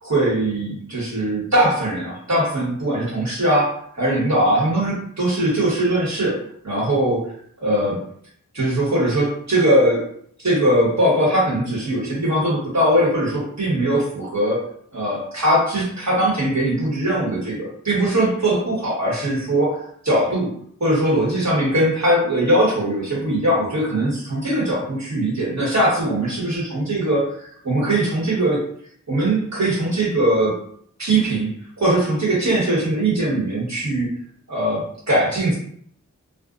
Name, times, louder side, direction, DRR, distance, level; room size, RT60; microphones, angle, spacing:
voice 1, 0.0-6.3 6.6-7.3 7.6-8.0 8.5-10.1 10.4-14.6 14.9-20.5 20.8-28.6 29.1-30.6 31.0-31.5 31.8-34.1 34.5-35.6, right 1 dB, 60° right, -6 dB, 1.2 m, -20 dB
2.5 x 2.2 x 2.4 m, 0.63 s
wide cardioid pair, 40°, 31 cm